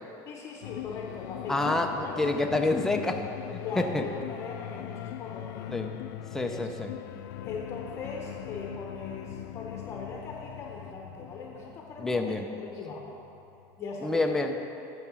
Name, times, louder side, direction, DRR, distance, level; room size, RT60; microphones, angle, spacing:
voice 1, 0.3-2.2 3.6-5.9 6.4-6.9 7.4-12.4 12.6-13.0 13.8-14.4 14.7-14.8, left 4 dB, 25° left, 0 dB, 0.8 m, -40 dB
sound 1, 0.6-14.3, left 12 dB, 75° left, 0.4 m, -41 dB
voice 2, 1.5-3.2 3.5-4.0 5.7-5.9 6.3-6.9 12.0-12.5 14.0-14.5, left 2 dB, 5° left, 3 dB, 0.4 m, -27 dB
8.7 x 7.2 x 6.0 m, 2.9 s
cardioid pair, 175°, 10 cm